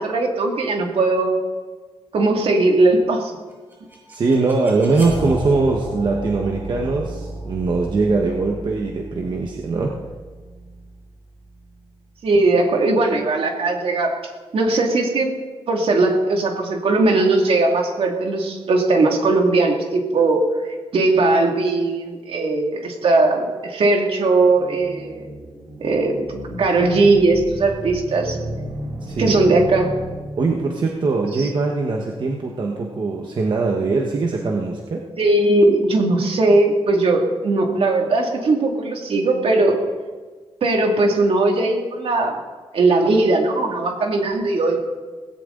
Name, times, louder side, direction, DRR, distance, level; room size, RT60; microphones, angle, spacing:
voice 1, 0.0-1.3 2.1-3.3 12.2-14.1 14.5-15.3 15.7-25.2 25.8-26.2 26.6-28.4 29.2-29.9 31.4-31.5 35.2-39.8 40.6-42.3 42.7-44.8, right 2 dB, 65° right, 2 dB, 2.4 m, -18 dB
sound 1, 3.5-12.4, right 2 dB, 20° right, 6.4 m, -34 dB
voice 2, 4.1-9.9 29.0-29.4 30.3-35.1, right 3 dB, 50° right, 0 dB, 1.3 m, -21 dB
sound 2, 24.4-30.7, equal, 90° right, 5.1 m, -33 dB
18.5 x 16.5 x 3.9 m, 1.4 s
wide cardioid pair, 175°, 10 cm